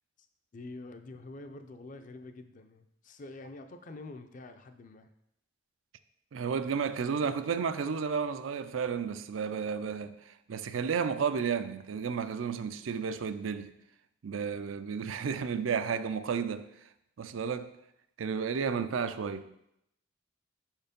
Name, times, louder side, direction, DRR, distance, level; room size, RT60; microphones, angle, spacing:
voice 1, 0.5-5.1, left 2 dB, 40° left, 0.5 m, -46 dB
voice 2, 6.3-13.7 14.2-16.7 17.2-17.7 18.2-19.5, right 6 dB, 85° right, 0.4 m, -32 dB
5.8 x 4.5 x 5.2 m
head